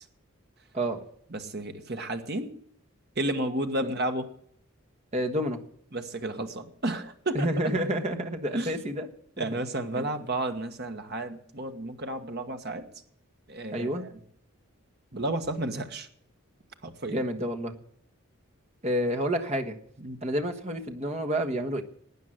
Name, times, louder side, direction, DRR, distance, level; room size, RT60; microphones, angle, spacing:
voice 1, 1.3-2.5 3.2-4.3 5.9-7.7 8.5-8.7 9.4-12.9 13.5-14.1 15.1-16.1 16.8-17.2 20.0-20.2, right 1 dB, 50° right, 6 dB, 1.4 m, -32 dB
voice 2, 5.1-5.6 7.3-9.1 9.4-9.6 10.0-10.1 13.7-14.0 17.1-17.8 18.8-19.7 20.2-21.8, equal, 30° right, 3 dB, 1.3 m, -29 dB
12.5 x 9.3 x 7.7 m, 0.65 s
head